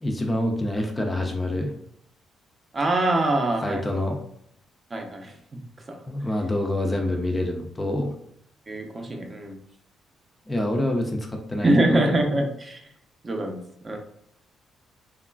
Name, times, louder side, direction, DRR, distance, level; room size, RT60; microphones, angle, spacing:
voice 1, 0.0-1.7 3.6-4.2 6.1-8.2 10.5-12.0, left 1 dB, 20° left, 3 dB, 0.4 m, -26 dB
voice 2, 2.7-3.8 4.9-5.3 5.9-6.0 8.7-9.6 11.6-12.8 13.2-14.0, right 1 dB, 30° right, 3 dB, 0.5 m, -24 dB
3.0 x 2.3 x 2.2 m, 0.71 s
cardioid pair, 90°, 0 cm